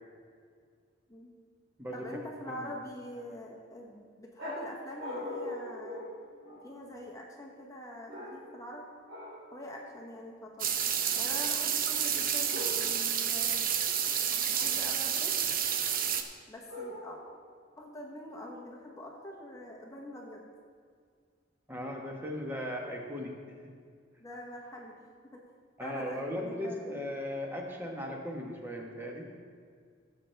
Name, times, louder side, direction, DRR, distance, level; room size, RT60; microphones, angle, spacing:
voice 1, 1.9-6.0 6.6-8.9 9.5-10.8 11.1-13.7 14.5-15.4 16.5-17.2 17.8-20.5 24.2-25.0 25.3-25.4 25.8-27.0, left 1 dB, 15° left, -1 dB, 1.0 m, -44 dB
sound 1, 4.4-6.9 8.1-8.7 9.1-9.5 12.5-13.2 16.7-17.4, left 1 dB, 80° right, 3.1 m, -41 dB
sound 2, 10.6-16.2, right 8 dB, 45° right, 0.7 m, -30 dB
voice 2, 21.7-23.4 25.8-29.3, equal, 10° right, 0 dB, 1.3 m, -37 dB
15.0 x 7.9 x 3.4 m, 2.1 s
head